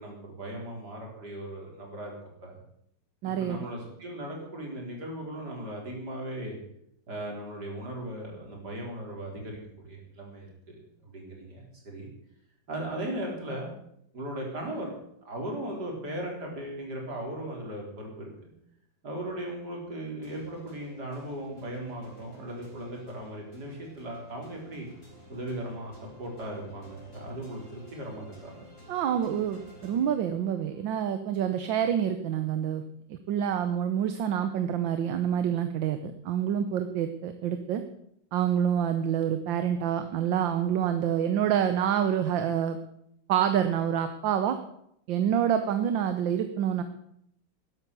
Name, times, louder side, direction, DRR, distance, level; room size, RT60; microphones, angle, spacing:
voice 1, 0.0-2.2 2.4-2.5 3.4-6.6 7.1-9.6 9.8-12.1 12.7-13.7 14.1-14.9 15.2-18.5 19.0-24.9 25.3-25.9 26.2-28.5, right 1 dB, 50° right, -1 dB, 4.5 m, -37 dB
voice 2, 3.2-3.6 28.9-32.8 33.1-37.8 38.3-42.8 43.3-44.6 45.1-46.8, right 9 dB, 70° right, 9 dB, 1.5 m, -27 dB
sound 1, 20.2-30.8, right 1 dB, 25° left, 4.2 m, -52 dB
13.0 x 11.0 x 6.8 m, 0.74 s
omnidirectional pair, 2.3 m